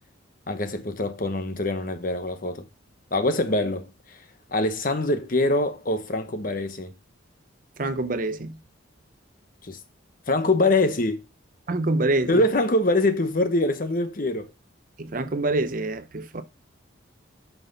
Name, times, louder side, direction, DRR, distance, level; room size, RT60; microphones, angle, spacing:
voice 1, 0.5-2.7 3.1-3.9 4.5-6.9 9.6-9.8 10.3-11.2 12.3-14.5, left 2 dB, 45° left, 1.0 m, -24 dB
voice 2, 7.8-8.6 11.7-12.3 15.0-16.4, right 2 dB, 40° right, 0.7 m, -26 dB
9.5 x 5.8 x 4.0 m
head